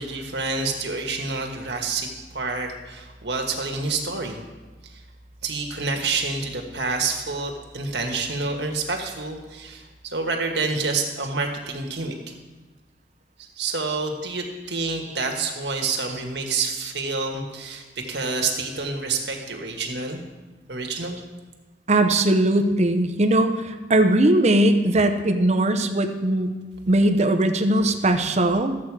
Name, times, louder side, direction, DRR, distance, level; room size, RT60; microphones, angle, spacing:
voice 1, 0.0-4.4 4.9-5.0 5.4-12.3 13.4-20.2 20.7-21.2, right 4 dB, 75° right, 2 dB, 1.6 m, -28 dB
voice 2, 21.9-26.5 26.9-28.8, right 1 dB, 40° right, 6 dB, 0.9 m, -20 dB
13.5 x 8.2 x 4.8 m, 1.2 s
head